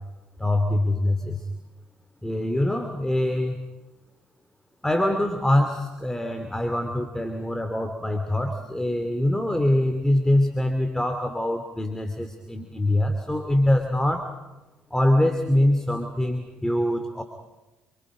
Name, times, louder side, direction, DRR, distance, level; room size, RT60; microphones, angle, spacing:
voice 1, 0.4-1.4 2.2-3.6 4.8-14.3 14.9-17.2, left 1 dB, 10° left, 7 dB, 2.9 m, -24 dB
28.5 x 25.0 x 5.1 m, 1.1 s
hypercardioid pair, 55°, 5 cm